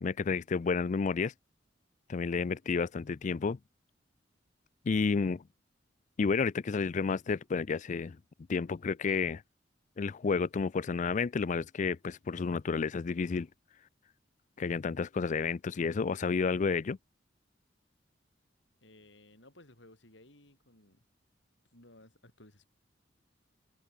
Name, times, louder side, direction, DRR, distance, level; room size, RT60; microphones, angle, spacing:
voice 1, 0.0-1.3 2.1-3.6 4.9-5.4 6.2-8.2 8.5-9.4 10.0-13.5 14.6-17.0, left 5 dB, 40° left, 0.4 m, -31 dB
voice 2, 18.8-21.0 21.7-22.7, left 1 dB, 80° left, 7.8 m, -58 dB
head